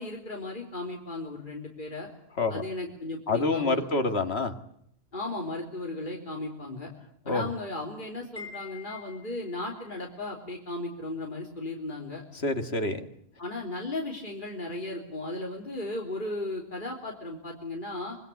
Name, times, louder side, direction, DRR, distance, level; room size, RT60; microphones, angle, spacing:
voice 1, 0.0-2.1 2.5-4.0 5.1-6.9 7.3-12.2 13.4-18.2, left 2 dB, 50° left, 0 dB, 3.6 m, -36 dB
voice 2, 3.3-4.5 7.3-7.5 12.4-13.0, left 3 dB, 75° left, 6 dB, 2.2 m, -27 dB
Wind chime, 8.4-9.7, left 6 dB, 10° left, 7.3 m, -45 dB
25.5 x 21.0 x 8.4 m, 0.72 s
omnidirectional pair, 1.1 m